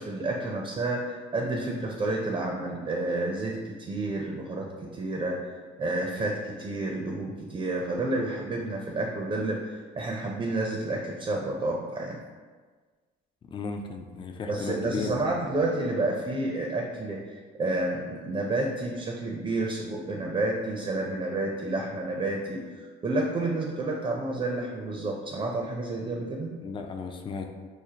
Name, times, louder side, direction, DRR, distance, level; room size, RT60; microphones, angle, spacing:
voice 1, 0.0-5.5 5.8-12.2 14.5-26.5, right 2 dB, 25° right, 0 dB, 0.5 m, -30 dB
voice 2, 13.5-15.5 26.6-27.5, left 4 dB, 25° left, 4 dB, 0.4 m, -35 dB
4.9 x 2.1 x 2.8 m, 1.5 s
supercardioid pair, 90°, 19 cm